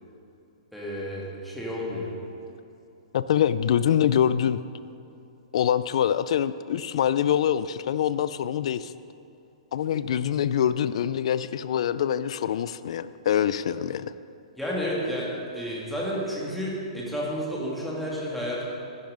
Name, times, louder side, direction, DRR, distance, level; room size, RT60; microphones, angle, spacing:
voice 1, 0.7-2.1 14.6-15.3 15.5-18.6, equal, ahead, -6 dB, 2.4 m, -31 dB
voice 2, 3.1-4.6 5.5-8.9 9.7-14.1, left 9 dB, 60° left, 15 dB, 0.5 m, -24 dB
12.0 x 11.0 x 5.1 m, 2.7 s
hypercardioid pair, 160°, 4 cm